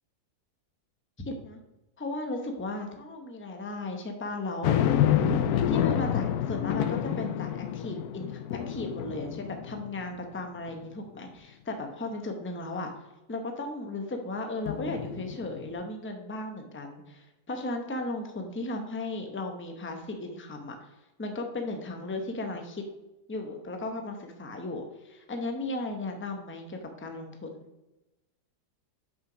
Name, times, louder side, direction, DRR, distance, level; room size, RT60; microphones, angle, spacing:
voice 1, 1.2-1.6 2.0-4.8 5.7-12.9 13.3-20.9 21.2-22.8 23.3-27.5, left 2 dB, 15° left, 4 dB, 0.4 m, -35 dB
sound 1, 4.6-10.2 10.7-10.8 14.7-15.7, left 10 dB, 70° left, 1.0 m, -28 dB
5.8 x 5.6 x 5.0 m, 0.99 s
omnidirectional pair, 1.8 m